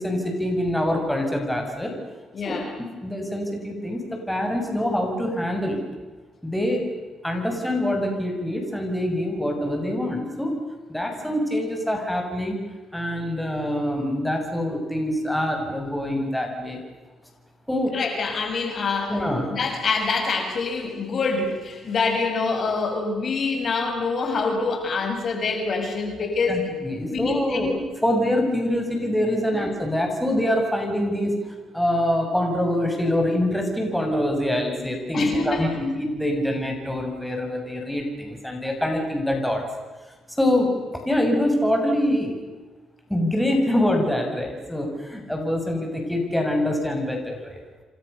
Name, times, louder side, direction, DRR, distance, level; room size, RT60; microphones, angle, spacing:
voice 1, 0.0-1.9 2.5-5.8 6.4-6.8 7.2-10.6 10.9-12.6 12.9-16.8 17.7-18.0 19.1-19.5 26.5-27.7 28.0-39.6 40.4-42.3 43.1-47.6, left 1 dB, 5° left, 2 dB, 7.1 m, -25 dB
voice 2, 2.3-2.7 17.9-19.2 19.5-26.6 27.1-27.7 29.5-29.6 35.1-35.8, left 4 dB, 50° left, 4 dB, 6.6 m, -26 dB
29.0 x 25.5 x 6.9 m, 1.3 s
cardioid pair, 90°, 0 cm